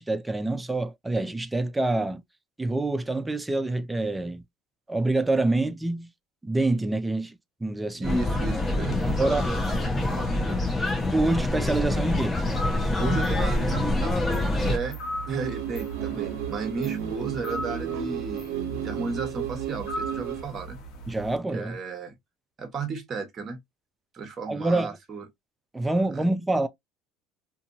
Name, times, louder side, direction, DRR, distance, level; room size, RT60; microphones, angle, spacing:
voice 1, 0.0-2.2 2.6-4.4 4.9-6.1 6.4-8.2 9.2-9.4 11.1-12.4 21.1-21.8 24.5-25.0 25.7-26.7, right 2 dB, 10° right, 0.4 m, -26 dB
sound 1, 8.0-14.8, left 2 dB, 20° left, 1.0 m, -26 dB
voice 2, 8.0-10.9 13.0-15.0 15.3-20.8 21.5-22.1 22.6-23.6 24.1-25.2 26.1-26.3, right 4 dB, 35° right, 1.1 m, -34 dB
sound 2, 12.4-21.4, right 2 dB, 65° left, 1.2 m, -37 dB
sound 3, 15.3-20.4, right 11 dB, 85° right, 0.6 m, -33 dB
2.6 x 2.6 x 2.5 m
supercardioid pair, 115°, 0 cm